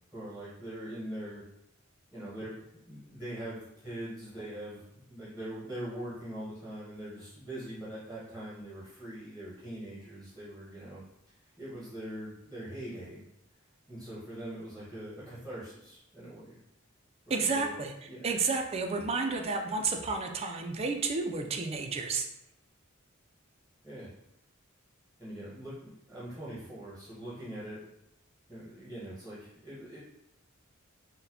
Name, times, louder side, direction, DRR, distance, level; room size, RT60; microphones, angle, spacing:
voice 1, 0.1-1.4 2.1-2.6 2.9-11.0 11.6-13.2 13.9-16.6 17.3-17.8 18.1-18.3 23.8-24.1 25.2-27.9 28.5-30.0, right 1 dB, 5° left, -9 dB, 0.9 m, -42 dB
voice 2, 17.3-17.9 18.2-22.3, right 4 dB, 30° right, 4 dB, 0.3 m, -31 dB
4.0 x 2.1 x 2.7 m, 0.80 s
head